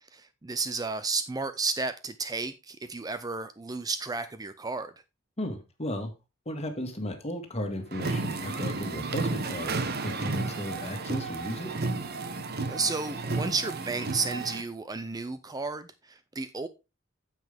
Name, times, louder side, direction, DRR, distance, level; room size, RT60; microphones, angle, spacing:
voice 1, 0.1-4.9 12.7-16.7, right 4 dB, 20° right, 0.5 m, -32 dB
voice 2, 5.4-6.1 6.5-9.8 10.0-11.7, left 1 dB, 30° left, 1.9 m, -35 dB
sound 1, 7.9-14.6, right 3 dB, 50° right, 1.1 m, -32 dB
9.2 x 7.5 x 3.5 m
head